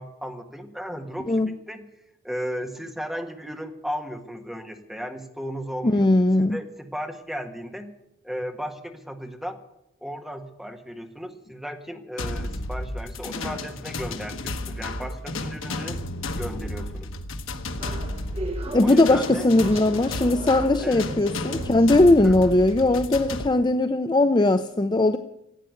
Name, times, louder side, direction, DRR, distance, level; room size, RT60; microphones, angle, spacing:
voice 1, 0.0-1.4 1.7-1.9 2.2-6.1 6.4-7.9 8.2-9.6 10.0-16.0 16.3-17.1 18.8-19.5 20.8-21.1 22.2-22.4, equal, ahead, 4 dB, 1.5 m, -35 dB
voice 2, 5.8-6.6 18.7-25.2, left 2 dB, 20° left, 9 dB, 0.5 m, -19 dB
sound 1, 12.2-23.5, left 2 dB, 75° left, 1.2 m, -32 dB
sound 2, 17.8-23.0, right 1 dB, 30° right, 1.7 m, -38 dB
15.5 x 9.0 x 9.1 m, 0.85 s
head